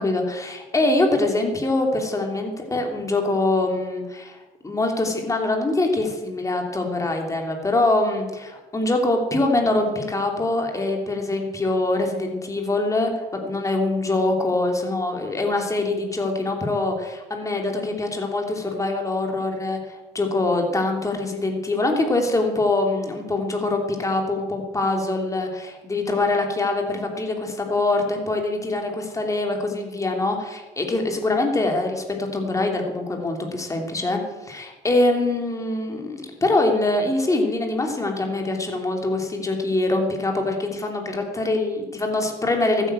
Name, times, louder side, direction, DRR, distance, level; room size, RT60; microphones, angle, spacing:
voice 1, 0.0-42.9, left 2 dB, 20° left, 2 dB, 2.9 m, -24 dB
14.5 x 9.3 x 7.6 m, 1.1 s
cardioid pair, 110°, 17 cm